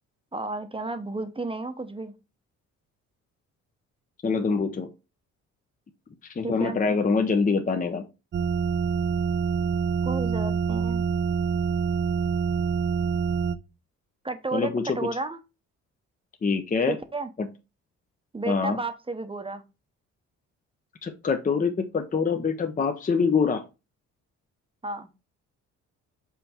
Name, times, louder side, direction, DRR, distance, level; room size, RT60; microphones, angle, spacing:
voice 1, 0.3-2.1 6.4-6.8 10.0-11.0 14.2-15.4 16.9-17.3 18.3-19.6 24.8-25.1, right 2 dB, 20° right, 0.9 m, -32 dB
voice 2, 4.2-4.9 6.4-8.1 14.5-15.0 16.4-17.0 17.4-17.5 18.5-18.8 21.0-23.6, left 5 dB, 25° left, 0.8 m, -25 dB
sound 1, 8.3-13.6, right 6 dB, 35° right, 0.5 m, -26 dB
5.6 x 4.4 x 4.3 m
cardioid pair, 90°, 30 cm